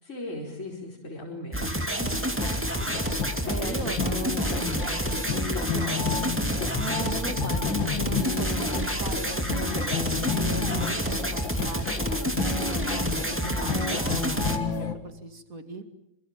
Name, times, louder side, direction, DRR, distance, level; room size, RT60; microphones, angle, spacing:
voice 1, 0.0-3.0 3.6-4.6 5.7-6.1, left 1 dB, 40° left, -3 dB, 5.3 m, -39 dB
sound 1, 1.5-14.6, equal, 5° right, 2.3 m, -29 dB
sound 2, 2.4-14.9, left 5 dB, 90° left, 2.8 m, -31 dB
voice 2, 3.4-5.2 6.8-9.8 10.3-12.8 13.1-15.8, right 4 dB, 45° right, 7 dB, 2.9 m, -39 dB
28.5 x 25.5 x 7.5 m, 0.83 s
omnidirectional pair, 2.0 m